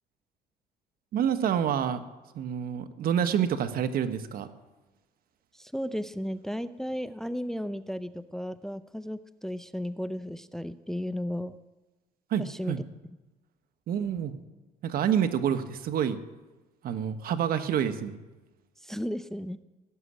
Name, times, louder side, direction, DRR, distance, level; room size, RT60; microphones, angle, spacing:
voice 1, 1.1-2.0 2.3-4.5 12.3-12.8 13.9-14.4 14.8-16.2 16.8-18.2, right 9 dB, 60° right, 9 dB, 1.3 m, -28 dB
voice 2, 5.5-11.6 12.4-12.8 18.8-19.6, equal, ahead, 14 dB, 0.5 m, -34 dB
17.0 x 7.5 x 10.0 m, 1.2 s
cardioid pair, 110°, 17 cm